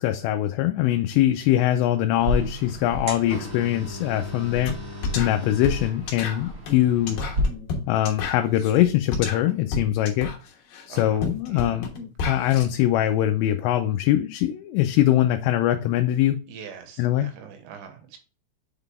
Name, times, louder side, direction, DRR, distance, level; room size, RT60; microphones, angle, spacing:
voice 1, 0.0-4.8 5.2-7.2 7.9-10.3 10.9-11.9 12.3-16.4 17.0-17.3, left 13 dB, 85° left, 2.8 m, -22 dB
sound 1, 2.2-7.4, equal, 45° right, 1.1 m, -33 dB
sound 2, 4.7-4.8 5.0-12.7, left 4 dB, 65° left, 2.7 m, -32 dB
voice 2, 10.9-11.8 16.5-18.2, right 7 dB, 80° right, 3.2 m, -44 dB
7.2 x 3.9 x 3.4 m
omnidirectional pair, 5.1 m